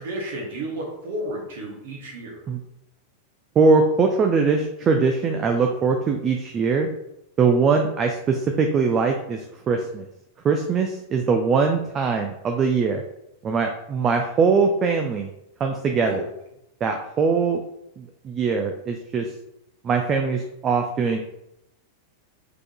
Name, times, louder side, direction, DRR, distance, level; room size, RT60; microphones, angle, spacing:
voice 1, 0.0-2.4 16.0-16.2, right 1 dB, 55° right, -1 dB, 1.1 m, -32 dB
voice 2, 3.6-6.9 7.4-10.1 10.4-13.0 13.4-15.3 15.6-16.2 16.8-17.6 18.0-19.3 19.8-21.2, right 5 dB, 25° right, 4 dB, 0.4 m, -21 dB
4.7 x 3.7 x 2.5 m, 0.82 s
figure-of-eight pair, 90°, 0 cm